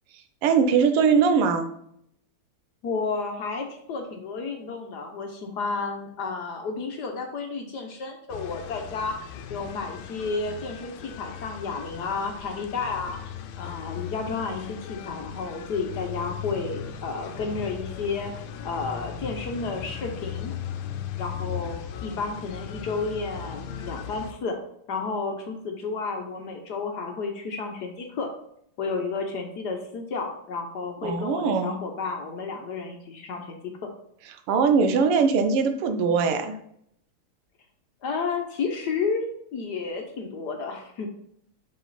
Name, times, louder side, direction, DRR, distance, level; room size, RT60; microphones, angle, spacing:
voice 1, 0.4-1.7 31.0-31.8 34.5-36.6, right 5 dB, 90° right, 7 dB, 1.7 m, -21 dB
voice 2, 2.8-9.1 9.5-20.5 21.1-24.6 24.9-28.3 28.8-33.9 38.0-41.1, left 4 dB, 60° left, 3 dB, 1.2 m, -32 dB
sound 1, 8.3-24.3, left 8 dB, 85° left, 1.5 m, -37 dB
5.7 x 5.4 x 4.0 m, 0.71 s
omnidirectional pair, 2.4 m